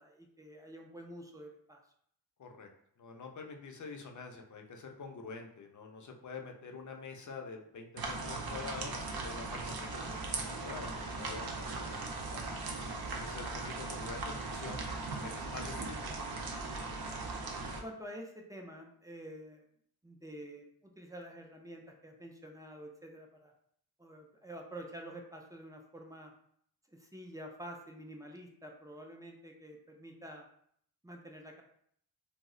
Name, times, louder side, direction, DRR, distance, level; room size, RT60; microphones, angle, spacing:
voice 1, 0.0-1.8 17.7-19.6 20.0-23.5 24.0-26.3 26.9-30.5 31.0-31.6, equal, 10° right, 1 dB, 0.4 m, -48 dB
voice 2, 3.0-12.5 13.1-14.8 15.2-16.2, left 4 dB, 45° left, 3 dB, 0.5 m, -47 dB
sound 1, 8.0-17.8, right 3 dB, 60° right, 0.6 m, -39 dB
2.3 x 2.0 x 3.6 m, 0.67 s
wide cardioid pair, 80°, 42 cm